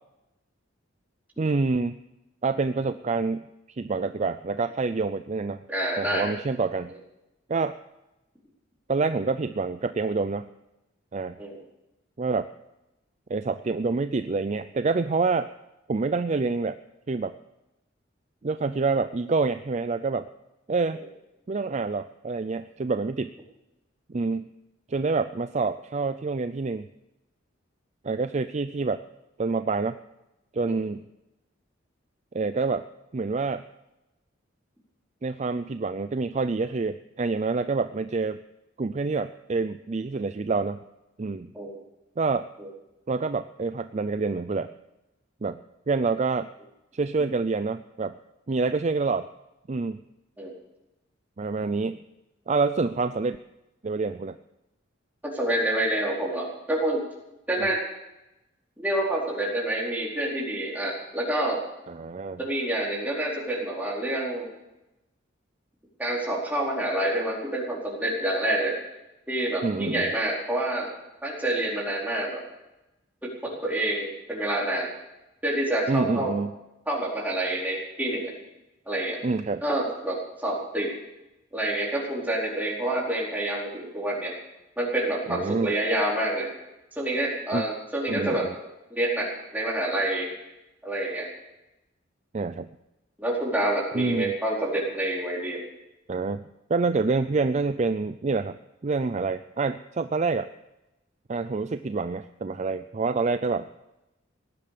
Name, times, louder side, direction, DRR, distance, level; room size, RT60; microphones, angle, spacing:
voice 1, 1.4-2.0 2.4-3.5 3.8-5.6 6.0-6.9 7.5-7.8 8.9-10.5 11.1-11.4 12.2-12.5 13.3-15.5 15.9-16.8 17.1-17.3 18.4-20.3 20.7-21.0 21.5-23.3 24.1-24.5 24.9-26.9 28.0-29.0 29.4-30.0 30.5-31.1 32.3-32.8 33.1-33.6 35.2-38.4 38.8-40.8 41.2-41.5 42.2-42.5 43.1-44.7 45.4-45.6 45.9-46.5 46.9-48.1 48.5-49.3 49.7-50.0 51.4-52.0 52.5-53.4 53.8-54.4 61.9-62.4 69.6-70.1 75.9-76.6 79.2-79.6 85.3-85.8 87.5-87.6 88.1-88.5 92.3-92.7 93.9-94.3 96.1-96.4 96.7-98.6 98.8-100.5 101.3-103.7, right 4 dB, 35° right, 11 dB, 0.4 m, -27 dB
voice 2, 5.7-6.3 11.4-11.6 20.9-21.0 30.6-30.8 41.5-41.7 42.6-42.7 50.4-50.5 55.2-57.0 57.5-57.8 58.8-61.6 62.4-64.5 66.0-68.7 69.3-70.9 71.2-72.4 73.4-74.9 75.4-76.3 76.9-78.3 78.9-79.2 79.6-80.9 81.5-84.3 84.8-86.5 86.9-88.5 88.9-90.3 90.8-91.3 93.2-95.6, right 1 dB, 10° right, -4 dB, 4.4 m, -27 dB
18.0 x 11.0 x 6.8 m, 0.94 s
head